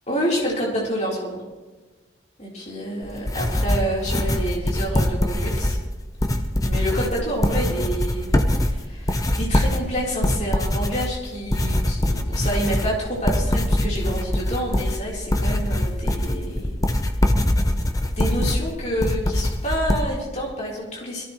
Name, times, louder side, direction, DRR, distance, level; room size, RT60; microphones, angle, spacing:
voice 1, 0.1-1.4 2.4-5.8 6.7-16.8 18.0-21.2, equal, 35° left, -4 dB, 3.9 m, -28 dB
sound 1, 3.0-20.0, left 1 dB, 20° left, 0.8 m, -23 dB
22.0 x 15.5 x 3.2 m, 1.2 s
head